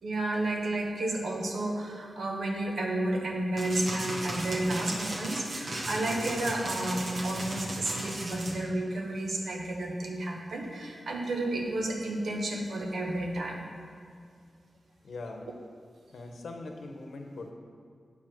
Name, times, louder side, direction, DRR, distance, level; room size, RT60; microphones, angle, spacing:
voice 1, 0.0-13.6, right 1 dB, 90° right, 1 dB, 1.1 m, -31 dB
sound 1, 3.6-8.6, right 1 dB, 50° right, 1.0 m, -36 dB
voice 2, 15.0-15.5 16.1-17.5, left 2 dB, 85° left, 3 dB, 0.9 m, -41 dB
8.4 x 4.9 x 6.0 m, 2.2 s
wide cardioid pair, 170°, 0 cm